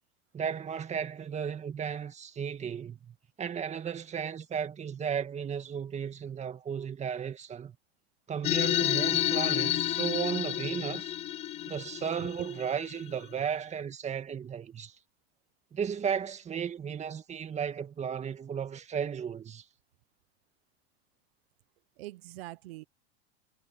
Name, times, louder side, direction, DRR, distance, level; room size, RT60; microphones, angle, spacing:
voice 1, 0.3-7.8 8.3-11.1 11.7-15.0 15.7-19.7, right 7 dB, 20° right, 1.9 m, -34 dB
sound 1, 8.4-13.3, left 13 dB, 20° left, 0.3 m, -30 dB
voice 2, 22.0-22.8, right 17 dB, 80° right, 0.9 m, -43 dB
supercardioid pair, 130°, 31 cm